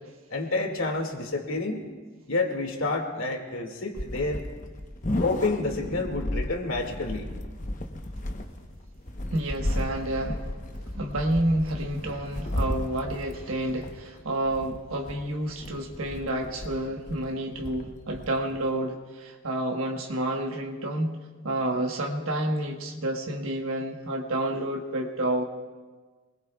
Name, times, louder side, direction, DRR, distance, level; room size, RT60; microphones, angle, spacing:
voice 1, 0.3-1.8 2.3-4.4 5.2-7.3, left 2 dB, 80° left, 3 dB, 2.2 m, -29 dB
sound 1, 3.9-18.7, left 1 dB, 40° left, 1.0 m, -34 dB
voice 2, 9.3-10.4 10.9-21.2 21.4-25.4, right 1 dB, 85° right, 2 dB, 1.3 m, -29 dB
26.5 x 20.5 x 2.4 m, 1.4 s
head